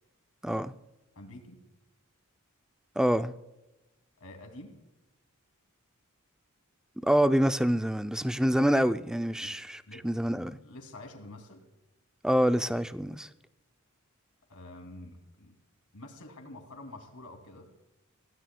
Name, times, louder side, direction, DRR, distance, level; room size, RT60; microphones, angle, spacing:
voice 1, 1.1-1.6 4.2-4.7 9.4-9.6 9.9-10.1 10.6-11.6 14.5-15.5 15.9-17.7, left 2 dB, 75° left, 2.7 m, -47 dB
voice 2, 3.0-3.3 7.0-10.6 12.2-13.3, equal, 5° right, 0.4 m, -26 dB
26.0 x 17.0 x 2.3 m
head